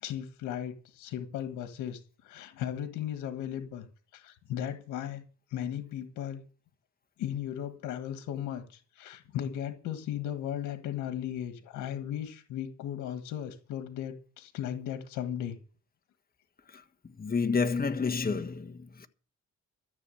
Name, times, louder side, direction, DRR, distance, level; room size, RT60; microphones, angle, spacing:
voice 1, 0.0-3.9 4.1-5.2 5.5-6.4 7.2-15.6, left 10 dB, 85° left, 1.6 m, -36 dB
voice 2, 17.2-19.1, left 5 dB, 30° left, 1.4 m, -29 dB
13.5 x 7.1 x 8.5 m
cardioid pair, 90°, 30 cm